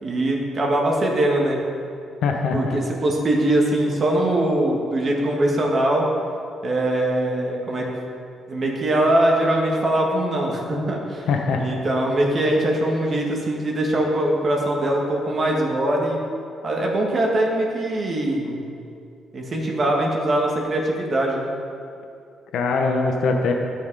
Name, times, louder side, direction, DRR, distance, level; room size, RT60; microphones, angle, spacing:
voice 1, 0.0-1.6 2.5-6.1 6.6-7.9 8.5-11.3 11.6-16.2 16.6-18.6 19.3-21.5, right 1 dB, 45° right, -1 dB, 1.8 m, -22 dB
voice 2, 2.2-2.8 11.3-11.7 22.5-23.5, left 4 dB, 75° left, 2 dB, 0.9 m, -22 dB
12.5 x 6.3 x 4.8 m, 2.5 s
cardioid pair, 90°, 0 cm